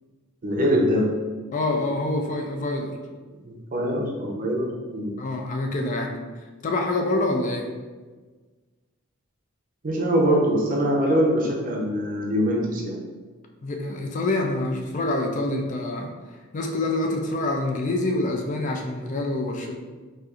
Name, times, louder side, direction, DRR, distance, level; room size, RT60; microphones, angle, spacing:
voice 1, 0.4-1.2 3.4-5.2 9.8-13.0, equal, 40° right, -2 dB, 0.6 m, -23 dB
voice 2, 1.5-3.0 5.2-7.7 13.6-19.7, left 2 dB, 35° left, 2 dB, 0.3 m, -26 dB
4.2 x 2.5 x 2.4 m, 1.4 s
head